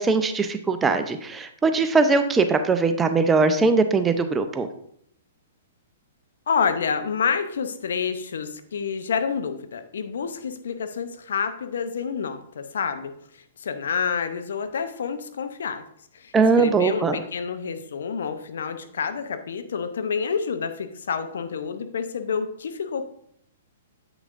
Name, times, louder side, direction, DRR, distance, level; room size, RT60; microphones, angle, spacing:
voice 1, 0.0-4.7 16.3-17.2, right 4 dB, 15° right, 8 dB, 0.5 m, -21 dB
voice 2, 6.5-13.1 13.6-15.8 16.1-23.0, left 6 dB, 70° left, 9 dB, 0.6 m, -28 dB
7.8 x 5.9 x 2.5 m, 0.68 s
figure-of-eight pair, 120°, 0 cm